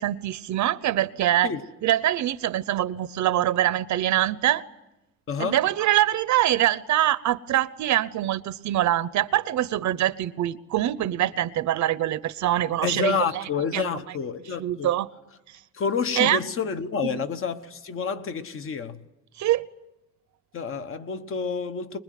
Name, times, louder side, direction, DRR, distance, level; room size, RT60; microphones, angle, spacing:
voice 1, 0.0-1.5 1.8-4.6 5.4-13.9 14.6-15.1 16.2-16.4 17.1-17.2 19.4-19.6, right 13 dB, 70° right, 0.9 m, -24 dB
voice 2, 5.3-5.6 12.8-14.9 15.7-19.0 20.5-22.0, left 6 dB, 45° left, 1.2 m, -29 dB
23.5 x 21.5 x 9.3 m
cardioid pair, 175°, 30 cm